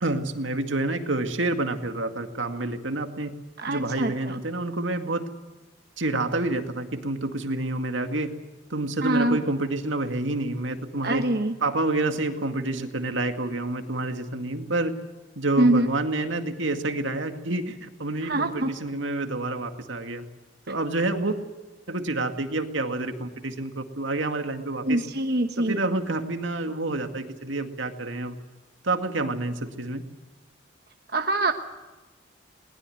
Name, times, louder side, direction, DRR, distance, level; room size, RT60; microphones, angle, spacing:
voice 1, 0.0-3.3 3.7-5.3 6.0-8.3 8.7-11.2 11.6-15.0 15.4-20.2 20.7-21.3 21.9-25.0 25.6-28.4 28.8-30.0, right 2 dB, 75° right, 6 dB, 2.2 m, -28 dB
voice 2, 3.6-4.3 9.0-9.4 11.0-11.5 15.6-15.9 18.2-18.7 24.8-25.8 31.1-31.5, right 1 dB, 50° right, 5 dB, 1.2 m, -24 dB
21.5 x 20.5 x 7.9 m, 1.2 s
head